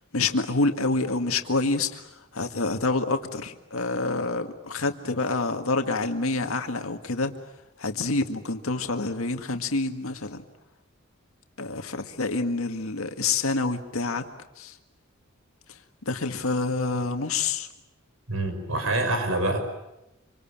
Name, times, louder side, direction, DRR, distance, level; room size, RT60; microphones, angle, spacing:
voice 1, 0.1-7.3 7.8-10.4 11.6-14.2 14.6-14.8 16.1-17.7, left 3 dB, 85° left, 6 dB, 1.9 m, -27 dB
voice 2, 18.3-19.6, right 2 dB, 80° right, 7 dB, 5.8 m, -26 dB
27.0 x 25.5 x 8.8 m, 0.91 s
head